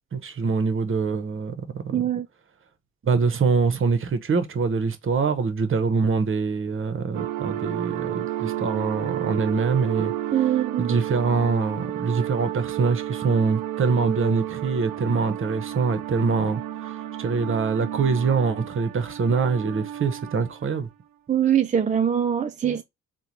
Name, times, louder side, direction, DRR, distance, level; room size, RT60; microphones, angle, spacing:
voice 1, 0.1-2.0 3.0-10.1 10.8-20.9, right 5 dB, 40° right, 0.8 m, -24 dB
voice 2, 1.9-2.3 10.3-11.0 21.3-22.8, right 9 dB, 25° right, 0.4 m, -23 dB
sound 1, 7.1-20.8, right 13 dB, 75° right, 0.5 m, -32 dB
3.7 x 2.2 x 2.8 m
supercardioid pair, 55°, 34 cm